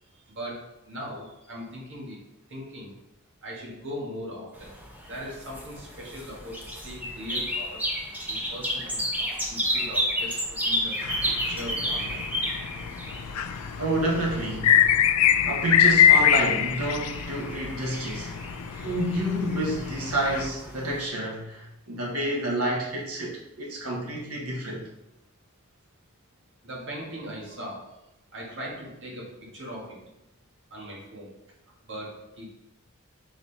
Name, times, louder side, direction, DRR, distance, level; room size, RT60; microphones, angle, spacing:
voice 1, 0.3-2.2 2.5-3.0 3.4-4.7 5.1-7.8 8.3-9.0 9.5-11.0 11.4-12.2 26.6-27.9 28.3-30.0 30.7-31.3 31.9-32.5, equal, 55° right, -3 dB, 2.0 m, -39 dB
sound 1, 4.6-21.1, equal, 10° right, 0.9 m, -33 dB
sound 2, 11.0-20.5, left 9 dB, 85° left, 0.4 m, -24 dB
voice 2, 13.8-14.7 15.4-18.4 18.8-24.8, right 1 dB, 80° right, -2 dB, 1.4 m, -29 dB
5.9 x 4.1 x 4.2 m, 0.88 s
head